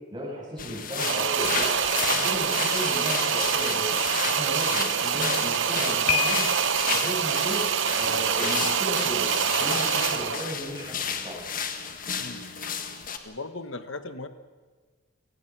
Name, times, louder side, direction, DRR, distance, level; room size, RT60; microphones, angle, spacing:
voice 1, 0.1-1.7 2.0-3.9 4.2-6.5 6.9-7.7 7.9-11.4, equal, 20° right, -4 dB, 7.2 m, -35 dB
sound 1, 0.6-13.2, left 6 dB, 40° left, 1.6 m, -32 dB
sound 2, 1.0-10.5, right 8 dB, 55° right, 0.7 m, -26 dB
Piano, 6.1-7.0, left 9 dB, 80° left, 1.2 m, -28 dB
voice 2, 13.2-14.3, left 3 dB, 60° left, 10 dB, 1.4 m, -37 dB
30.0 x 18.0 x 6.2 m, 1.5 s
head